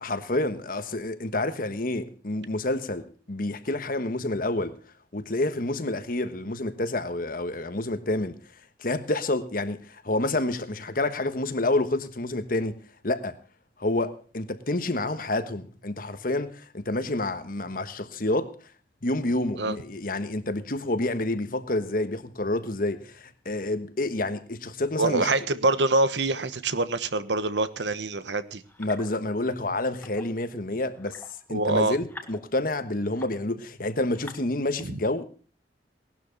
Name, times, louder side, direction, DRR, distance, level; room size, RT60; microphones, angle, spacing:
voice 1, 0.0-4.7 5.1-8.4 8.8-12.8 13.0-13.4 13.8-18.5 19.0-25.3 28.8-31.2 31.5-35.2, left 2 dB, 55° left, 1.4 m, -28 dB
voice 2, 25.0-28.6 31.5-32.0, right 2 dB, 85° right, 1.2 m, -25 dB
sound 1, 28.6-29.4 29.9-30.4 30.9-33.6 34.0-34.4, left 2 dB, 10° left, 1.7 m, -47 dB
19.0 x 12.0 x 4.1 m
head